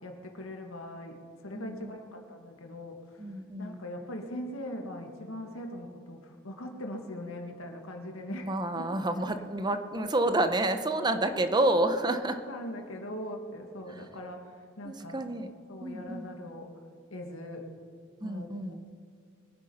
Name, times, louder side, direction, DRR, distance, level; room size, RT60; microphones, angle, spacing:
voice 1, 0.0-3.0 3.6-8.8 11.3-11.4 12.5-15.2 15.7-16.7 17.1-17.7 18.2-18.5, left 1 dB, 85° left, 3 dB, 1.9 m, -41 dB
voice 2, 1.5-1.9 3.2-3.8 8.4-12.4 13.9-14.0 14.8-15.5 15.8-16.3 18.2-18.8, right 1 dB, 20° right, 9 dB, 0.8 m, -29 dB
23.0 x 9.1 x 5.6 m, 2.2 s
head